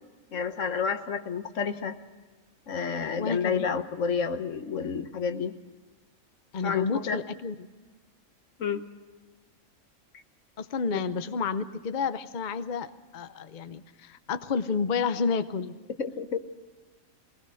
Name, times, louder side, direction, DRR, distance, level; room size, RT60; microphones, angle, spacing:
voice 1, 0.3-2.0 2.7-5.5 6.6-7.2 8.6-8.8 10.9-11.0 16.0-16.4, left 6 dB, 70° left, 9 dB, 1.4 m, -30 dB
voice 2, 3.2-3.8 6.5-7.7 10.6-15.8, left 5 dB, 45° left, 11 dB, 0.8 m, -30 dB
21.5 x 19.5 x 6.3 m, 1.3 s
omnidirectional pair, 1.4 m